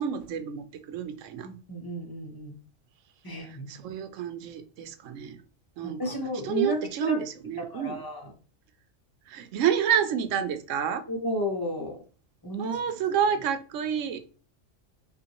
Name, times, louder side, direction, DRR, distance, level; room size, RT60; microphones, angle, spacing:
voice 1, 0.0-1.5 3.4-5.4 5.8-6.2 6.4-8.0 9.3-11.0 12.6-14.2, right 8 dB, 90° right, 0.9 m, -29 dB
voice 2, 1.4-2.6 3.2-3.8 5.8-7.2 7.6-8.3 11.1-12.0 12.4-12.8, equal, 20° left, 0.7 m, -32 dB
5.4 x 2.5 x 2.9 m
omnidirectional pair, 1.3 m